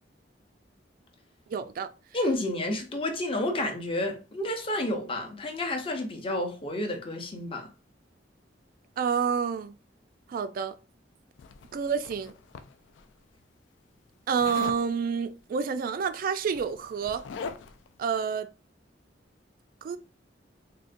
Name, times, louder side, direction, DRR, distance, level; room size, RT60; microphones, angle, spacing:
voice 1, 1.5-1.9 9.0-9.8 10.3-10.7 11.7-12.3 14.3-17.2 18.0-18.5 19.8-20.0, right 6 dB, 50° right, 0.3 m, -28 dB
voice 2, 2.1-7.7, left 1 dB, 30° left, 0.6 m, -30 dB
Zipper (clothing), 11.4-13.0 14.4-14.8 16.0-16.1 16.4-17.9, left 5 dB, 80° left, 0.3 m, -41 dB
3.6 x 2.1 x 2.5 m
head